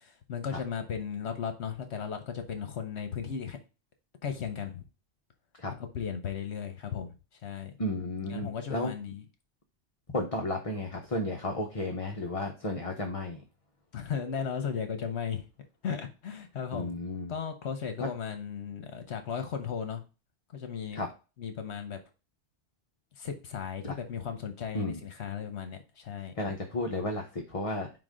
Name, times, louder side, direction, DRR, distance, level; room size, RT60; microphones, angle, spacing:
voice 1, 0.0-3.6 4.2-4.8 5.9-7.1 7.4-7.7 8.3-9.2 13.9-15.5 15.8-16.9 17.3-20.0 20.5-21.0 21.4-22.0 23.2-26.3, left 7 dB, 75° left, 1.1 m, -36 dB
voice 2, 7.8-8.9 10.1-13.4 16.7-17.3 18.0-18.1 20.9-21.1 23.8-23.9 24.7-25.0 26.4-28.0, left 2 dB, 35° left, 0.7 m, -33 dB
4.8 x 4.0 x 4.9 m
omnidirectional pair, 1.2 m